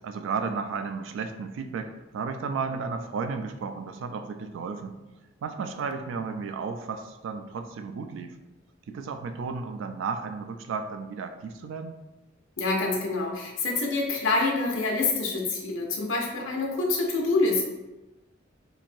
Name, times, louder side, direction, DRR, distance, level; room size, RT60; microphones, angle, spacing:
voice 1, 0.0-5.0 5.4-8.4 8.9-12.0, right 5 dB, 80° right, 8 dB, 0.3 m, -33 dB
voice 2, 12.6-17.6, left 3 dB, 90° left, -1 dB, 0.6 m, -26 dB
3.1 x 2.6 x 2.5 m, 1.1 s
head